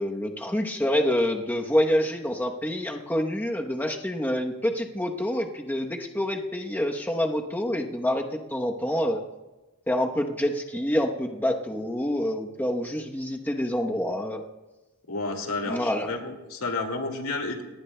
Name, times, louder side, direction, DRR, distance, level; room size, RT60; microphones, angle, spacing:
voice 1, 0.0-9.2 9.9-14.5 15.7-16.1, left 1 dB, 10° left, 2 dB, 0.9 m, -27 dB
voice 2, 15.1-17.6, left 3 dB, 85° left, 3 dB, 2.2 m, -31 dB
26.5 x 19.5 x 2.2 m, 1.1 s
head